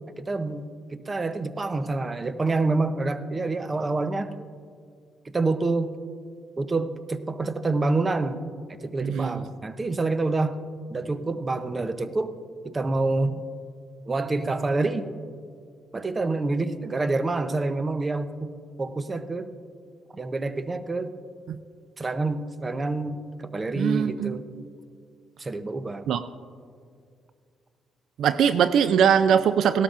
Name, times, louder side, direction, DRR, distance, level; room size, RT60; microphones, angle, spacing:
voice 1, 0.2-4.3 5.3-5.9 6.6-8.4 8.8-10.6 10.9-12.3 12.6-13.4 14.1-15.0 15.9-18.5 18.8-19.5 20.1-21.2 22.0-24.5 25.4-26.1, right 3 dB, 25° right, 11 dB, 0.6 m, -27 dB
voice 2, 9.0-9.4 21.5-21.6 23.8-24.6 26.1-26.3 28.2-29.8, right 8 dB, 75° right, 13 dB, 0.3 m, -22 dB
17.0 x 12.5 x 2.5 m, 2.2 s
cardioid pair, 90°, 0 cm